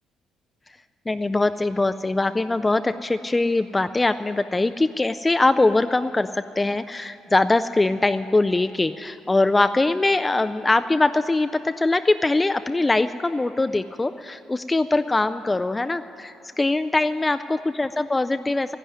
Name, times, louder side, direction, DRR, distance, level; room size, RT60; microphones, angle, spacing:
voice 1, 1.1-18.8, left 2 dB, 15° left, 10 dB, 0.3 m, -22 dB
12.0 x 11.0 x 9.9 m, 2.8 s
cardioid pair, 95°, 0 cm